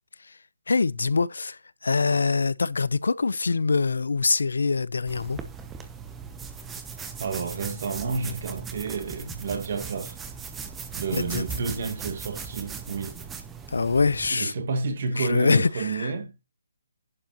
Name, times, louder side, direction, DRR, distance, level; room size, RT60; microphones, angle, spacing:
voice 1, 0.7-5.4 11.2-11.4 13.7-14.5 15.2-16.1, left 4 dB, 85° left, 0.7 m, -24 dB
sound 1, 5.1-14.3, right 5 dB, 10° right, 0.8 m, -38 dB
voice 2, 7.2-10.2 10.9-13.3 14.3-16.4, right 4 dB, 45° right, 1.9 m, -30 dB
11.0 x 7.7 x 3.0 m
hypercardioid pair, 165°, 0 cm